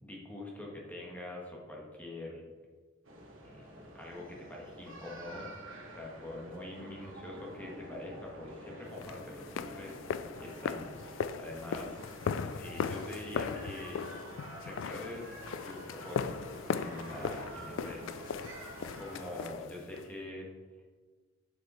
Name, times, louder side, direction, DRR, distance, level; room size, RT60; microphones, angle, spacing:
voice 1, 0.0-2.4 3.5-3.7 3.9-5.5 5.9-12.0 12.6-14.0 14.6-15.4 15.6-18.5 18.7-20.5, left 1 dB, 10° left, -3 dB, 1.4 m, -44 dB
sound 1, 3.0-19.5, right 1 dB, 85° right, 1.3 m, -48 dB
sound 2, 9.0-20.1, left 6 dB, 70° left, 0.3 m, -38 dB
6.9 x 4.9 x 4.2 m, 1.4 s
head